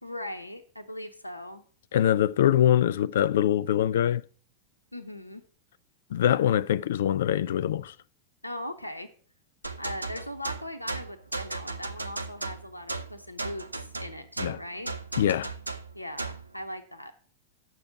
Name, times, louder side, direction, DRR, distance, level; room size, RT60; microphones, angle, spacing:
voice 1, 0.0-1.6 4.9-5.4 8.4-9.1 9.8-14.9 15.9-17.2, left 1 dB, 85° left, 0.8 m, -39 dB
voice 2, 1.9-4.2 6.1-7.9 14.4-14.6 15.2-15.5, left 10 dB, 60° left, 0.3 m, -23 dB
sound 1, 9.6-16.5, right 3 dB, 80° right, 0.7 m, -36 dB
8.5 x 6.9 x 6.0 m
figure-of-eight pair, 90°, 0 cm